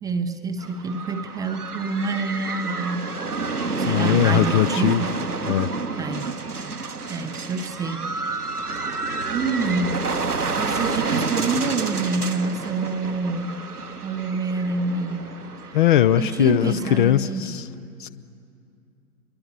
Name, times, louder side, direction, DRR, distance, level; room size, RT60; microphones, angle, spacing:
voice 1, 0.0-3.1 3.8-5.2 6.0-6.4 7.1-8.3 9.3-10.0 10.6-13.6 14.0-15.3 15.6-15.8 16.2-17.6, right 3 dB, 10° right, 7 dB, 0.7 m, -27 dB
sound 1, 0.6-17.2, right 4 dB, 90° right, 1.3 m, -29 dB
voice 2, 3.8-5.0 5.5-5.7 15.7-17.7 18.0-18.1, left 11 dB, 35° left, 15 dB, 0.7 m, -20 dB
28.0 x 23.0 x 8.4 m, 2.6 s
figure-of-eight pair, 110°, 44 cm